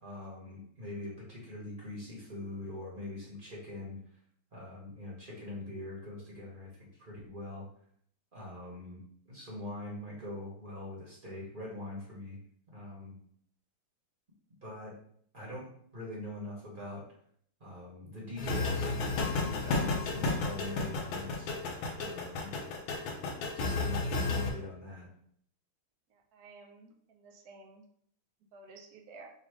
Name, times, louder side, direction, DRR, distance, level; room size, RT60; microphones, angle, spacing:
voice 1, 0.0-4.0 4.5-7.7 8.3-9.0 9.3-12.4 12.7-13.1 14.6-14.9 15.3-15.6 15.9-17.0 17.6-21.5 22.0-22.5 23.5-25.1, left 1 dB, 35° right, -5 dB, 0.9 m, -43 dB
sound 1, 18.4-24.5, left 3 dB, 70° left, 1.4 m, -32 dB
voice 2, 26.1-27.8 28.5-29.3, right 3 dB, 70° right, 2 dB, 0.9 m, -53 dB
4.0 x 2.5 x 4.7 m, 0.65 s
omnidirectional pair, 2.4 m